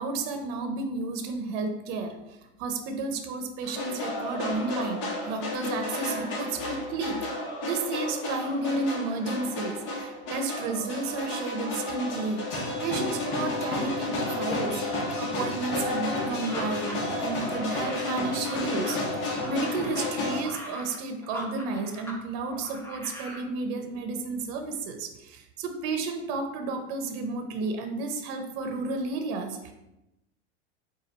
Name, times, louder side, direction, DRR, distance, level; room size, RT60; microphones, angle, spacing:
voice 1, 0.0-7.4 7.6-12.4 12.8-29.7, right 3 dB, 55° right, 6 dB, 0.7 m, -32 dB
sound 1, 3.6-20.4, left 2 dB, 65° left, 1.4 m, -32 dB
sound 2, 16.4-22.2 22.5-23.4, equal, 5° left, 0.7 m, -42 dB
4.2 x 2.5 x 3.9 m, 0.92 s
hypercardioid pair, 105°, 34 cm